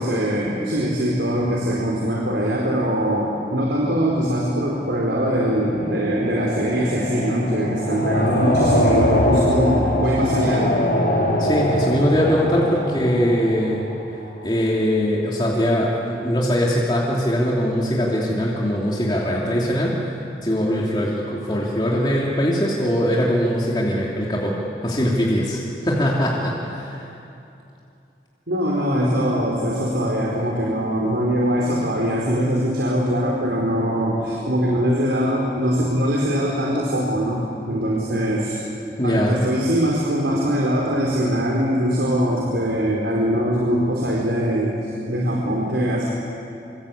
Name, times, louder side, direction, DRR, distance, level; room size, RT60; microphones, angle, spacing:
voice 1, 0.0-10.8 28.5-38.6 39.0-46.1, equal, 75° right, -3 dB, 4.4 m, -22 dB
sound 1, 3.7-14.6, left 1 dB, 55° left, 6.7 m, -23 dB
voice 2, 11.4-13.8 14.4-20.0 20.4-24.5 24.8-27.0 39.0-39.3, equal, 25° left, -4 dB, 2.9 m, -21 dB
26.5 x 26.0 x 8.6 m, 2.8 s
head